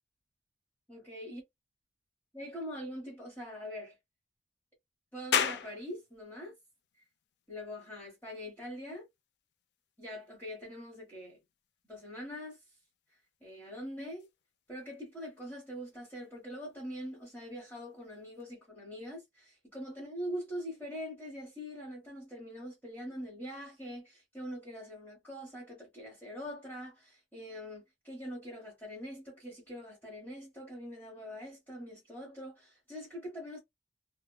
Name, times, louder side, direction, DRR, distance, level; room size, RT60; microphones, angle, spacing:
voice 1, 0.9-1.4 2.3-3.9 5.1-6.5 7.5-9.1 10.0-11.4 11.9-12.6 13.4-14.3 14.7-33.6, equal, 10° left, 1.1 m, -43 dB
sound 1, 5.3-18.4, left 8 dB, 65° left, 0.3 m, -42 dB
2.8 x 2.1 x 2.2 m
head